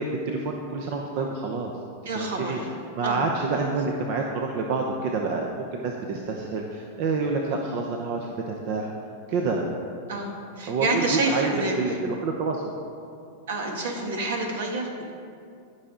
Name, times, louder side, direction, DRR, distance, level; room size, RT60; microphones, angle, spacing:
voice 1, 0.0-1.7 2.1-2.6 2.9-8.9 9.3-9.7 10.7-12.7, right 3 dB, 55° right, 1 dB, 0.8 m, -28 dB
voice 2, 2.0-2.7 3.0-3.2 10.1-12.0 13.5-15.0, right 2 dB, 80° right, 1 dB, 1.7 m, -28 dB
14.5 x 5.7 x 3.9 m, 2.4 s
hypercardioid pair, 120°, 0 cm